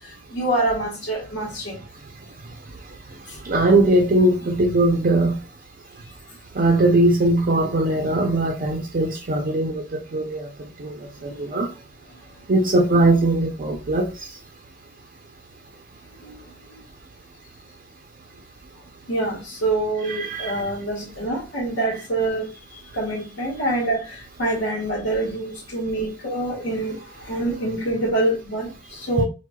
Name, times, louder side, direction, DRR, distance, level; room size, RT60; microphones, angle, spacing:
voice 1, 0.3-1.8 11.3-11.4 19.1-29.2, right 2 dB, 85° left, 0.9 m, -26 dB
voice 2, 3.4-5.3 6.5-11.7 12.5-14.3 20.1-20.7 29.2-29.3, right 2 dB, 50° right, 0.5 m, -20 dB
4.6 x 2.1 x 2.2 m
head